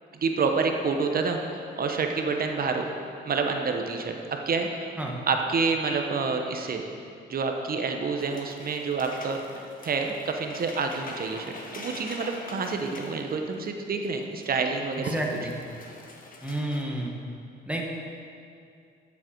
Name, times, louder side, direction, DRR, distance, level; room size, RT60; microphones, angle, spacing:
voice 1, 0.1-1.4 1.8-2.9 3.2-4.1 4.5-4.7 5.3-6.8 7.3-9.4 9.8-15.1, right 4 dB, 50° right, 4 dB, 1.0 m, -28 dB
sound 1, 8.2-14.1 14.4-14.5 14.8-16.8, left 2 dB, 45° left, 1.5 m, -44 dB
voice 2, 15.0-15.6 16.4-17.1 17.6-17.8, right 1 dB, 5° right, -1 dB, 1.7 m, -30 dB
11.5 x 7.5 x 4.6 m, 2.4 s
cardioid pair, 90°, 20 cm